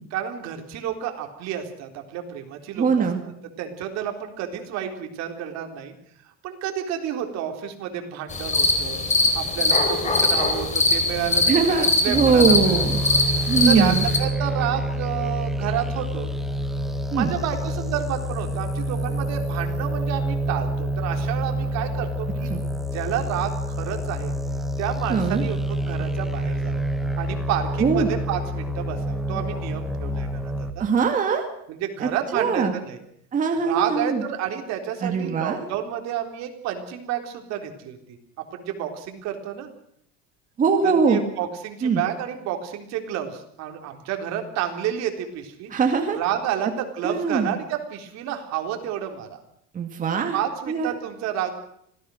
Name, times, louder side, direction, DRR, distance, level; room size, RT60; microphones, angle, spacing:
voice 1, 0.1-3.1 3.6-5.9 6.4-9.0 9.3-11.6 12.0-13.1 13.7-16.3 17.1-22.5 22.9-24.3 24.8-26.9 27.2-30.9 31.7-33.0 33.6-38.0 38.5-39.7 40.8-45.7 46.1-49.4 50.3-51.5, right 10 dB, 65° right, 5 dB, 4.0 m, -30 dB
voice 2, 2.8-3.2 11.5-13.0 13.5-14.0 17.1-17.3 22.5-22.6 25.1-25.4 27.8-28.1 30.8-31.4 32.0-32.7 33.3-34.2 35.0-35.6 40.6-41.2 41.8-42.0 45.7-46.2 47.0-47.6 49.7-50.4 50.7-50.9, right 5 dB, 25° right, 4 dB, 2.3 m, -21 dB
sound 1, 8.3-14.2, left 2 dB, 25° left, 4.0 m, -22 dB
sound 2, 12.1-30.7, equal, ahead, 1.4 m, -27 dB
26.0 x 17.5 x 6.5 m, 0.70 s
cardioid pair, 150°, 29 cm